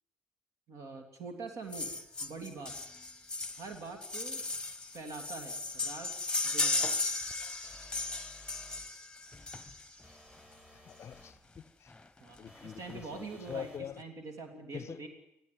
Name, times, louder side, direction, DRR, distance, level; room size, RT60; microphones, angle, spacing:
voice 1, 0.7-1.9 2.2-2.7 3.6-4.4 4.9-6.1 6.4-6.9 12.2-15.1, right 3 dB, 60° right, 3.1 m, -44 dB
sound 1, 1.7-10.0 11.1-11.2 11.6-11.7 11.9-12.0 12.4-13.0 13.5-13.6, left 3 dB, 10° left, 1.3 m, -36 dB
sound 2, 7.6-8.9 10.0-11.4 12.5-13.9, equal, 15° right, 3.5 m, -57 dB
voice 2, 10.9-11.9 12.4-14.0 14.7-15.0, left 8 dB, 45° left, 0.7 m, -44 dB
21.0 x 14.0 x 9.4 m
hypercardioid pair, 50°, 6 cm